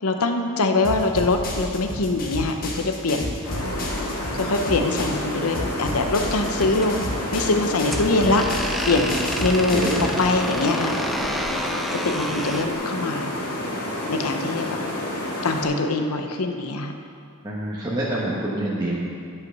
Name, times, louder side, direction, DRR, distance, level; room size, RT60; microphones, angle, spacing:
voice 1, 0.0-3.3 4.3-8.4 8.9-9.9 10.2-10.9 11.9-13.3 14.1-14.7 15.4-17.0, left 3 dB, 70° left, 5 dB, 0.8 m, -23 dB
sound 1, 0.8-5.3 5.5-10.2, left 1 dB, 40° left, 1.3 m, -32 dB
sound 2, 3.4-15.6, left 1 dB, 85° left, 2.0 m, -29 dB
sound 3, 6.5-12.7, equal, ahead, 0.4 m, -31 dB
voice 2, 9.7-10.2 17.4-19.0, right 1 dB, 20° right, -7 dB, 1.2 m, -26 dB
10.5 x 5.8 x 6.7 m, 2.4 s
head